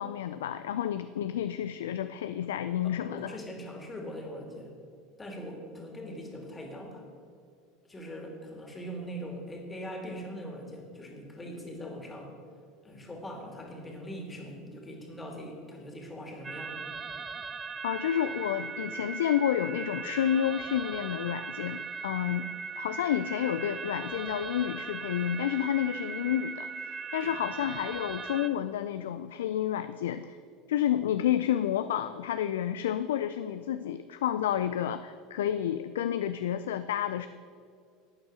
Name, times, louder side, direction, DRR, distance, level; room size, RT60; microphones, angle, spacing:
voice 1, 0.0-3.4 17.8-22.5 22.8-30.4 30.7-37.3, left 10 dB, 75° left, 11 dB, 0.3 m, -30 dB
voice 2, 2.8-4.7 5.2-7.0 7.9-12.3 12.8-16.8 22.4-22.5 27.2-27.3, equal, 20° left, 2 dB, 2.5 m, -41 dB
sound 1, 16.4-28.5, right 5 dB, 25° right, 0.7 m, -39 dB
12.0 x 8.6 x 5.0 m, 2.3 s
hypercardioid pair, 75°, 0 cm